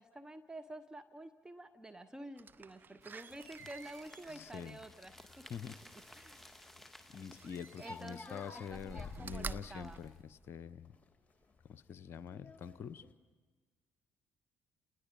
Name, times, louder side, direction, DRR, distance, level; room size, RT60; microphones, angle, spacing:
voice 1, 0.0-5.4 6.1-7.0 7.8-10.0, right 1 dB, 15° right, 10 dB, 1.1 m, -50 dB
Slam, 2.4-6.2 7.3-8.3 8.6-10.9 11.4-11.5, right 5 dB, 40° right, 0.9 m, -49 dB
sound 1, 3.0-10.2, left 1 dB, 5° left, 1.8 m, -59 dB
sound 2, 3.3-13.1, left 4 dB, 30° left, 2.4 m, -54 dB
voice 2, 4.3-4.8 5.5-5.8 7.1-11.0 11.7-13.0, left 7 dB, 55° left, 17 dB, 0.7 m, -46 dB
30.0 x 19.5 x 5.3 m, 1.4 s
hypercardioid pair, 50°, 5 cm